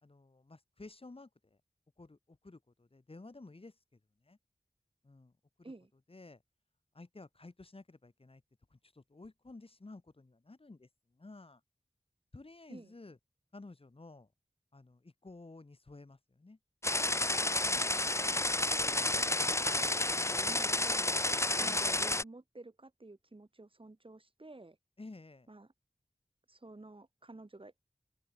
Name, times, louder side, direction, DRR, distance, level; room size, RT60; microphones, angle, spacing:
voice 1, 0.0-1.6 2.0-4.4 5.0-5.7 6.1-6.4 6.9-8.4 8.7-11.6 12.3-13.2 13.5-14.3 14.7-16.6 19.3-19.6 21.6-21.9 25.0-25.5, left 2 dB, 50° left, 2.5 m, -53 dB
sound 1, 16.8-22.2, left 2 dB, 20° left, 0.7 m, -31 dB
voice 2, 18.2-19.1 20.0-21.2 21.5-24.8 25.5-25.7 26.5-27.7, right 2 dB, 45° right, 6.4 m, -51 dB
open air
wide cardioid pair, 45°, 12 cm